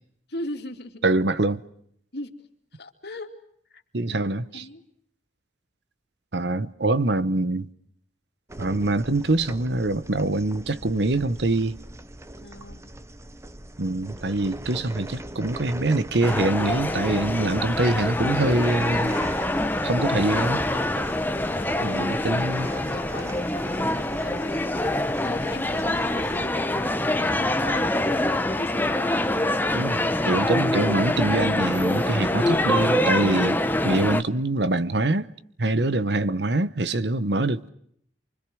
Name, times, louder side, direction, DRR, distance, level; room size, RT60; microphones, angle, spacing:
voice 1, 0.3-1.1 2.1-2.3 2.7-3.3 3.7-3.8 4.1-4.8 12.4-12.9 21.1-29.2, left 1 dB, 65° left, 2.9 m, -40 dB
voice 2, 1.0-1.6 3.9-4.6 6.3-7.7 8.6-11.8 13.8-19.1 19.8-20.6 21.8-22.7 29.7-35.3 35.6-37.7, right 2 dB, 70° right, 1.1 m, -24 dB
sound 1, 8.5-26.5, right 1 dB, 15° right, 0.9 m, -40 dB
sound 2, 16.2-34.2, left 1 dB, 10° left, 1.1 m, -25 dB
29.0 x 25.0 x 6.3 m
head